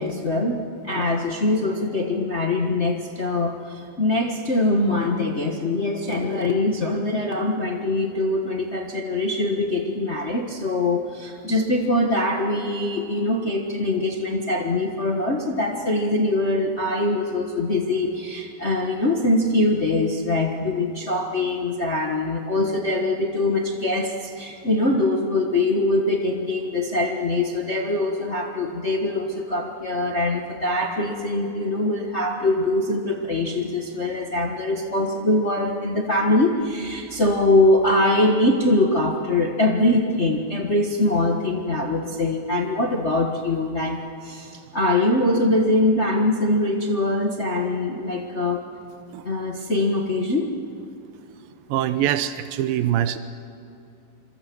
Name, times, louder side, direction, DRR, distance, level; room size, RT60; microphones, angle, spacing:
voice 1, 0.0-48.7 49.2-50.5, left 2 dB, 80° left, 1 dB, 0.6 m, -23 dB
voice 2, 51.7-53.2, right 11 dB, 85° right, 11 dB, 2.7 m, -23 dB
27.5 x 23.0 x 6.2 m, 2.7 s
omnidirectional pair, 4.0 m